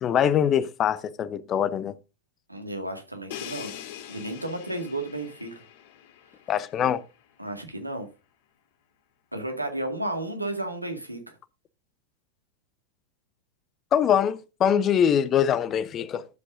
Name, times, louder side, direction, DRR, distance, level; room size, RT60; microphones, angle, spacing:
voice 1, 0.0-1.9 6.5-7.0 13.9-16.3, left 9 dB, 30° left, 0.7 m, -23 dB
voice 2, 2.5-3.7 4.1-5.5 7.4-8.1 9.3-11.4, right 1 dB, 85° right, 2.0 m, -33 dB
Crash cymbal, 3.3-7.1, left 10 dB, 50° left, 1.8 m, -43 dB
13.0 x 7.7 x 2.6 m
figure-of-eight pair, 90°, 0 cm